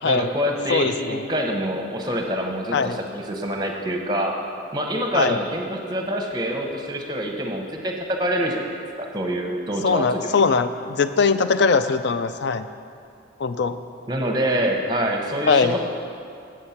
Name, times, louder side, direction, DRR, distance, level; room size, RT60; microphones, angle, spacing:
voice 1, 0.0-4.4 4.7-10.1 14.1-15.8, equal, 20° right, 2 dB, 0.8 m, -26 dB
voice 2, 0.7-1.2 2.7-3.0 5.1-5.4 9.8-12.7 13.4-13.8 15.5-15.8, left 5 dB, 55° left, 11 dB, 0.4 m, -21 dB
8.0 x 7.6 x 5.7 m, 2.6 s
head